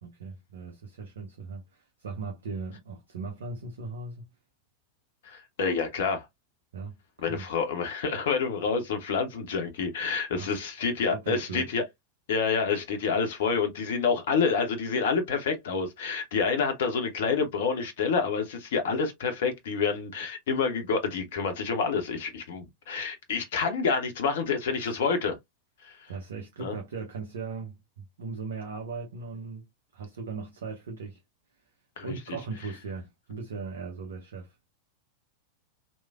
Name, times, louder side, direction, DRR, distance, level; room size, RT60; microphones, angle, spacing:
voice 1, 0.0-4.3 6.7-7.0 7.3-7.5 10.4-10.6 11.1-11.7 24.8-25.0 26.1-29.7 29.9-31.2 32.0-34.5, right 4 dB, 65° right, 0.6 m, -38 dB
voice 2, 5.2-6.3 7.2-11.8 12.3-25.4 25.8-26.1 26.6-26.7 32.0-32.2, left 5 dB, 55° left, 0.6 m, -28 dB
3.1 x 2.1 x 2.3 m
figure-of-eight pair, 90°, 0 cm